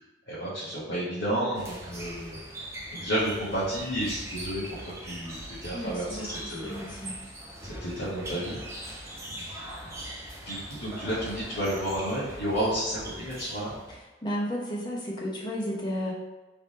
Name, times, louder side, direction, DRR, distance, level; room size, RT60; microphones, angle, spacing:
voice 1, 0.3-2.4 2.9-4.6 5.0-6.8 7.8-8.6 10.4-13.7, right 1 dB, 70° left, -10 dB, 1.3 m, -31 dB
sound 1, 1.5-14.0, right 1 dB, 15° right, 0.6 m, -41 dB
voice 2, 5.7-7.1 14.2-16.1, equal, 20° left, -4 dB, 0.9 m, -33 dB
3.6 x 3.4 x 4.2 m, 1.1 s
head